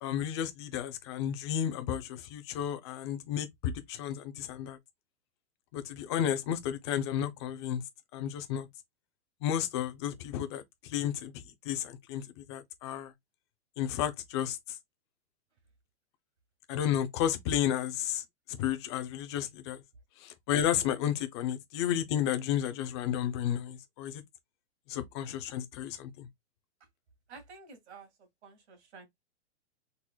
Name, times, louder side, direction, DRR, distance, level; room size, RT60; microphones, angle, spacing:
voice 1, 0.0-4.8 5.7-7.8 8.1-8.7 9.4-13.1 13.8-14.8 16.7-18.2 18.5-19.8 20.2-24.2 24.9-26.3, left 10 dB, 25° left, 0.4 m, -32 dB
voice 2, 27.3-29.1, right 4 dB, 70° right, 2.0 m, -51 dB
3.9 x 2.9 x 2.2 m
hypercardioid pair, 150°, 35 cm